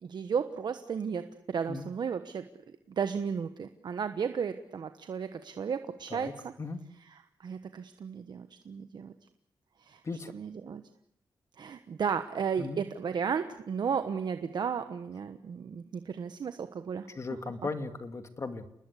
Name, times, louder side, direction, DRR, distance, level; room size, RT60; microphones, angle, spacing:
voice 1, 0.0-2.5 3.0-6.5 7.1-9.1 9.8-10.0 10.3-10.8 11.6-17.1, right 6 dB, 60° right, 9 dB, 1.2 m, -34 dB
voice 2, 17.1-18.7, left 3 dB, 35° left, 9 dB, 2.3 m, -37 dB
29.0 x 20.5 x 8.3 m, 0.76 s
wide cardioid pair, 120°, 8 cm